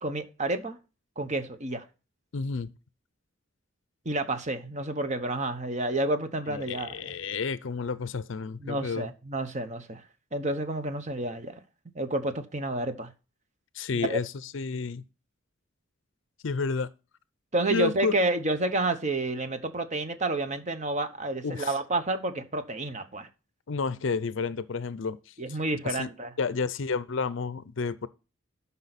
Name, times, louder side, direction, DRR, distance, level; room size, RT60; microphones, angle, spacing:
voice 1, 0.0-0.8 1.2-1.8 4.0-7.1 8.6-10.0 10.3-11.6 11.9-13.1 14.0-14.2 17.5-23.3 25.4-26.3, right 2 dB, 35° right, 1.0 m, -30 dB
voice 2, 2.3-2.7 6.5-9.1 13.7-15.0 16.4-16.9 17.7-18.1 21.4-21.8 23.7-25.6 25.8-26.1 26.4-28.1, left 4 dB, 60° left, 0.5 m, -31 dB
12.5 x 5.6 x 4.1 m
head